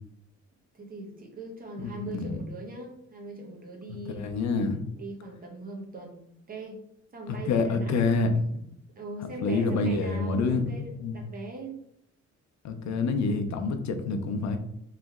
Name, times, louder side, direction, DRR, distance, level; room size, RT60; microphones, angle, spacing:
voice 1, 0.7-4.3 5.0-6.2 6.5-6.8 7.1-8.1 9.0-11.8, right 2 dB, 30° right, 0 dB, 0.9 m, -40 dB
voice 2, 1.8-2.4 4.1-4.8 7.5-8.4 9.4-11.2 12.6-14.6, left 4 dB, 70° left, 7 dB, 0.6 m, -27 dB
3.3 x 3.0 x 3.5 m, 0.75 s
cardioid pair, 140°, 29 cm